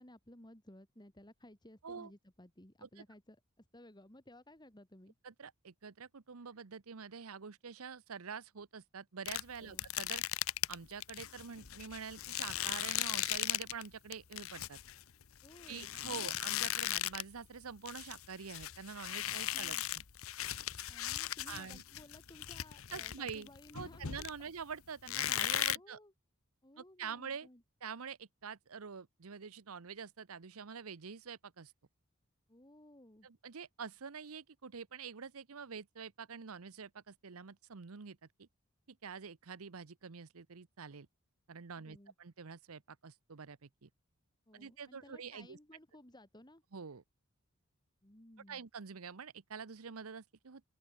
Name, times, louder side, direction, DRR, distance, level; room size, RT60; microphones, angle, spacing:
voice 1, 0.0-5.1 9.6-9.9 15.4-16.3 19.5-19.8 20.9-24.3 25.7-26.1 26.6-27.6 32.5-33.3 41.8-42.1 44.5-46.6 48.0-48.6, left 1 dB, 20° left, 3.1 m, -58 dB
voice 2, 5.2-10.2 10.7-14.8 15.7-20.0 21.5-21.8 22.9-23.5 23.7-26.0 26.8-27.5 27.8-31.7 33.2-38.5 38.9-41.1 41.5-43.9 44.5-45.6 46.7-47.0 48.5-50.6, right 6 dB, 90° right, 0.8 m, -46 dB
sound 1, 9.3-13.9 14.1-17.4 17.6-24.6 25.1-25.8, left 13 dB, 75° left, 0.9 m, -38 dB
open air
head